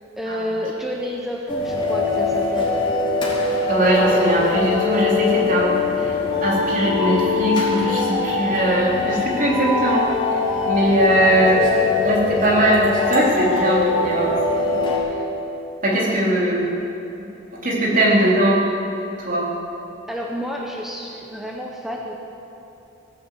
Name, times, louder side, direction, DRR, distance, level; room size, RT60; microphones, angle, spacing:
voice 1, 0.2-2.7 11.0-11.6 16.1-16.2 20.1-22.2, equal, ahead, -1 dB, 1.0 m, -30 dB
sound 1, 1.5-15.0, left 4 dB, 25° left, 3.5 m, -22 dB
voice 2, 3.7-5.7 6.0-10.1 10.7-11.7 12.0-14.8 15.8-16.7 17.6-18.6 19.2-19.5, right 1 dB, 45° right, -5 dB, 3.7 m, -20 dB
17.5 x 9.6 x 8.3 m, 2.8 s
head